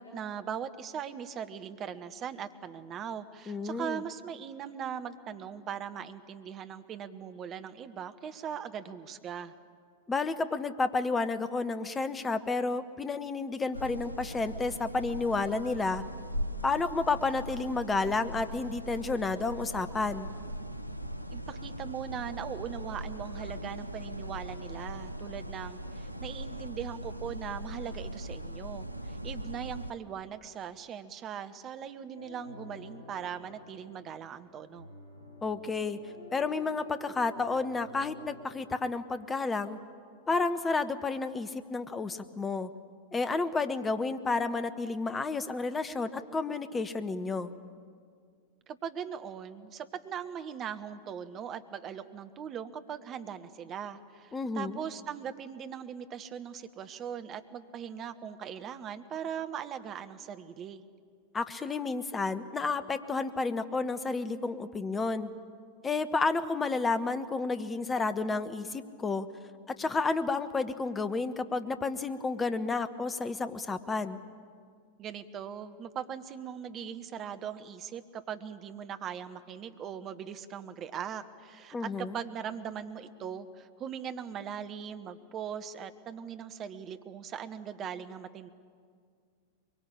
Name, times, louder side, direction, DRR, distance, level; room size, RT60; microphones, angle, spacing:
voice 1, 0.0-9.5 21.3-34.9 48.7-60.8 75.0-88.5, right 8 dB, 30° right, 10 dB, 1.3 m, -40 dB
voice 2, 3.5-4.0 10.1-16.0 16.6-20.3 35.4-36.0 36.3-39.8 40.3-42.7 43.1-47.5 54.3-54.8 61.3-65.3 65.8-69.3 69.7-74.2 81.7-82.2, left 3 dB, 15° left, 11 dB, 1.2 m, -31 dB
sound 1, 13.7-29.9, equal, 90° right, 0.7 m, -40 dB
sound 2, 32.1-38.6, left 2 dB, 80° left, 4.8 m, -51 dB
23.0 x 23.0 x 8.7 m, 2.1 s
figure-of-eight pair, 90°, 0 cm